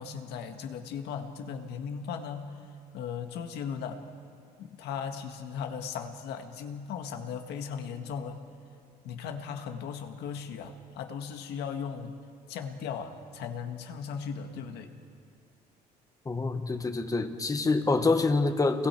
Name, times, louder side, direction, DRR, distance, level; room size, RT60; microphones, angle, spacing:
voice 1, 0.0-2.6 2.9-4.0 4.6-8.4 9.0-12.2 12.5-14.9, left 7 dB, 80° left, 6 dB, 1.8 m, -37 dB
voice 2, 16.2-18.9, left 3 dB, 20° left, 7 dB, 1.5 m, -26 dB
29.5 x 22.0 x 4.5 m, 2.3 s
cardioid pair, 110°, 17 cm